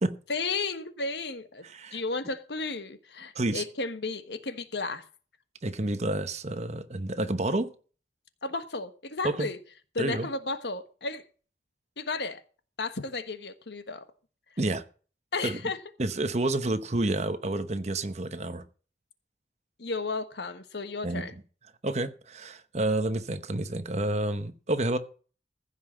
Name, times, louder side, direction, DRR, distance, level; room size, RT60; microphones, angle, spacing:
voice 1, 0.3-1.6 1.9-5.0 8.4-9.6 9.9-11.2 12.0-12.4 12.8-14.1 15.3-15.8 19.8-21.3, left 3 dB, 70° left, 1.4 m, -33 dB
voice 2, 1.6-2.0 3.3-3.6 5.6-7.7 9.2-9.5 10.0-10.3 14.6-14.8 15.4-15.6 16.0-18.6 21.0-21.2 21.8-25.0, right 2 dB, 40° right, 1.0 m, -29 dB
15.0 x 5.8 x 7.4 m
head